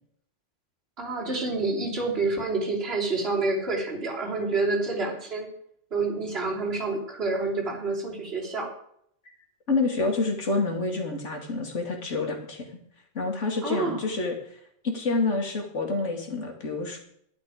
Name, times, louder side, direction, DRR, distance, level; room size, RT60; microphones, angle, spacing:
voice 1, 1.0-5.5 5.9-8.8 13.6-14.0, right 3 dB, 55° right, -3 dB, 3.6 m, -28 dB
voice 2, 9.7-12.6 13.1-14.6 14.8-17.0, left 3 dB, 80° left, 3 dB, 2.5 m, -28 dB
12.0 x 10.0 x 5.0 m, 0.69 s
omnidirectional pair, 1.2 m